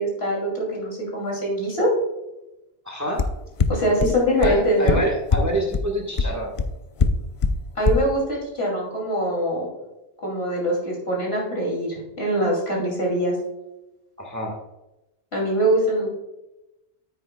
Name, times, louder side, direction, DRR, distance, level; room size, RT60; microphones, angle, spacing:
voice 1, 0.0-1.9 3.7-5.0 7.8-9.7 10.2-13.3 15.3-16.1, right 1 dB, 60° left, -2 dB, 3.0 m, -23 dB
voice 2, 2.8-3.2 4.4-6.5 14.2-14.5, equal, 15° right, -1 dB, 1.3 m, -27 dB
sound 1, 3.2-3.3 3.6-3.7 4.0-4.1 4.4-4.5 4.9-5.0 5.3-5.4 5.7-5.8 6.2-6.3 6.6-6.7 7.0-7.1 7.4-7.5 7.9-8.0, left 5 dB, 45° left, 0.4 m, -18 dB
9.4 x 8.8 x 2.3 m, 0.95 s
omnidirectional pair, 1.2 m